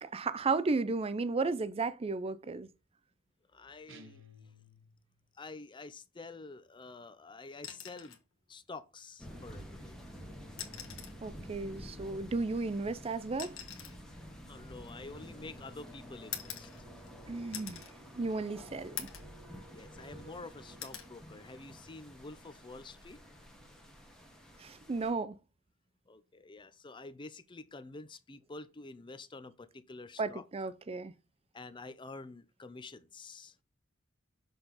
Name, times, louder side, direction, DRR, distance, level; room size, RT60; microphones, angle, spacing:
voice 1, 0.0-2.7 11.2-13.6 17.3-17.8 18.2-19.1 24.6-25.4 30.2-31.1, right 3 dB, 25° right, 0.4 m, -34 dB
voice 2, 3.5-4.2 5.4-8.2 8.5-9.9 10.6-10.7 13.8-13.9 14.5-16.7 19.7-23.2 26.1-30.7 31.5-33.5, left 3 dB, 20° left, 0.5 m, -48 dB
sound 1, 3.9-5.3, left 1 dB, 60° right, 1.0 m, -56 dB
sound 2, 7.5-8.3 9.7-9.8 10.5-11.3 12.4-15.5 16.3-17.2 17.5-17.9 18.4-18.5 19.0-19.4 19.8-20.4 20.8-21.1 22.6-22.8, left 9 dB, 65° left, 1.3 m, -45 dB
sound 3, 9.2-25.1, equal, 5° left, 1.3 m, -50 dB
6.7 x 4.2 x 3.9 m
head